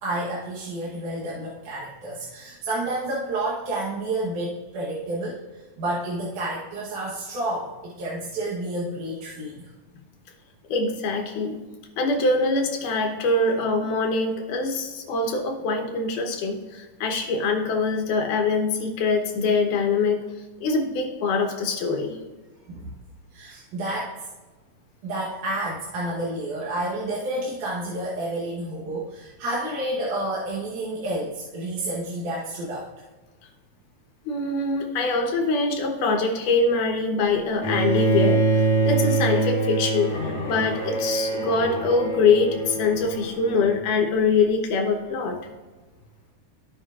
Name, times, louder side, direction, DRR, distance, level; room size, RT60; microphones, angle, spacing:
voice 1, 0.0-5.4 5.8-9.7 22.7-22.9 23.3-24.1 25.0-32.9, right 1 dB, 75° right, -6 dB, 2.5 m, -30 dB
voice 2, 10.7-11.6 12.0-20.3 20.6-22.2 34.3-45.4, left 3 dB, 80° left, 2 dB, 2.6 m, -24 dB
Bowed string instrument, 37.6-43.7, right 2 dB, 40° left, 3.4 m, -24 dB
16.0 x 5.3 x 2.4 m, 1.2 s
omnidirectional pair, 3.7 m